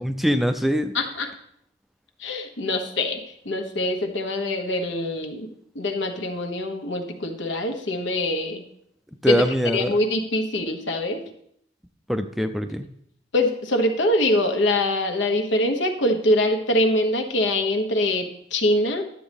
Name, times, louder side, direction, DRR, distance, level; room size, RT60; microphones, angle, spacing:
voice 1, 0.0-0.9 9.2-10.0 12.1-12.8, equal, ahead, 7 dB, 0.4 m, -23 dB
voice 2, 0.9-1.3 2.2-5.5 5.7-8.6 9.3-9.4 9.7-11.2 13.3-19.0, left 1 dB, 85° left, 4 dB, 1.3 m, -24 dB
11.5 x 7.9 x 3.5 m, 0.69 s
head